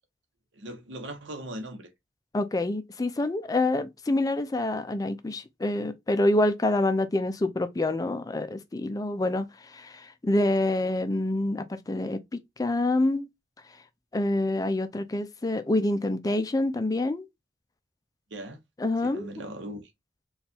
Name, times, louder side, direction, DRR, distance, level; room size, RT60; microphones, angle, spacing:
voice 1, 0.6-1.9 18.3-18.6 19.0-19.9, right 1 dB, 85° right, 0.8 m, -39 dB
voice 2, 2.3-13.3 14.1-17.3 18.8-19.3, left 2 dB, 20° left, 0.4 m, -27 dB
4.2 x 2.4 x 2.7 m
head